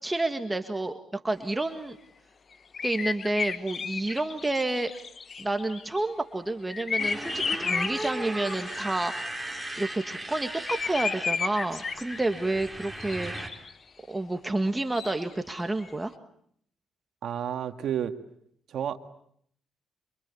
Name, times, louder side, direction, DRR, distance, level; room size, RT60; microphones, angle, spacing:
voice 1, 0.0-2.0 2.8-4.9 5.4-9.5 9.8-13.3 14.1-16.1, right 2 dB, 15° right, 7 dB, 1.7 m, -29 dB
sound 1, 2.7-6.0 6.7-9.0 10.7-12.4 12.9-13.0 13.2-13.7 15.8-15.9, left 5 dB, 40° left, 1.1 m, -33 dB
Motorcycle, 7.0-13.5, right 1 dB, 5° left, 5.6 m, -36 dB
sound 2, 10.3-10.5 10.9-11.0 11.4-11.9 12.9-13.3 14.4-14.5 14.8-15.7, left 5 dB, 65° left, 5.8 m, -49 dB
voice 2, 17.2-18.2 18.7-19.0, right 9 dB, 65° right, 8 dB, 2.0 m, -30 dB
28.0 x 25.0 x 8.5 m, 0.67 s
cardioid pair, 95°, 0 cm